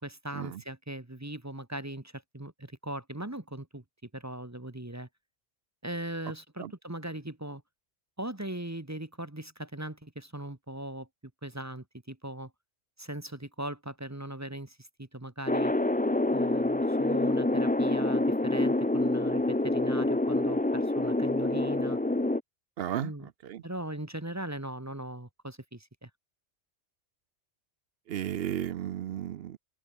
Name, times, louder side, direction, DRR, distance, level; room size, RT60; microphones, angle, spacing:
voice 1, 0.0-3.8 4.1-5.1 5.8-7.6 8.2-11.1 11.4-12.5 13.0-15.7 16.3-22.0 23.0-23.3 23.6-26.1, right 1 dB, 15° right, 1.3 m, -39 dB
sound 1, 15.5-22.4, left 2 dB, 10° left, 0.4 m, -27 dB
voice 2, 22.8-23.1 23.4-23.6 28.1-29.6, right 11 dB, 65° right, 0.7 m, -34 dB
omnidirectional pair, 1.2 m